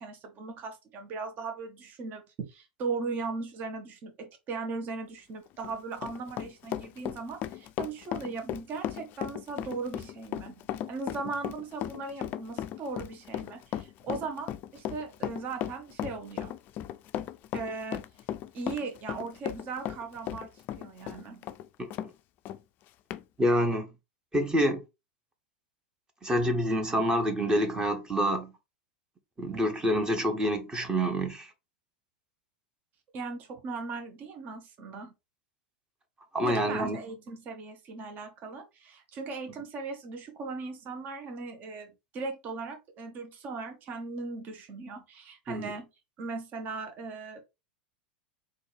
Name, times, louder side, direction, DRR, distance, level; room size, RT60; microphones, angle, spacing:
voice 1, 0.0-10.6 10.9-16.6 17.5-18.0 18.5-20.5 20.8-21.4 33.1-35.1 36.4-45.9 46.2-47.4, right 4 dB, 40° right, 0.9 m, -38 dB
Run, 5.5-22.1 22.5-22.6 23.1-23.2, left 11 dB, 40° left, 0.3 m, -36 dB
voice 2, 23.4-23.9 24.3-24.8 26.2-28.5 29.4-31.5 36.3-37.0 45.5-45.7, equal, 15° right, 1.1 m, -27 dB
4.1 x 2.5 x 3.4 m
hypercardioid pair, 95°, 5 cm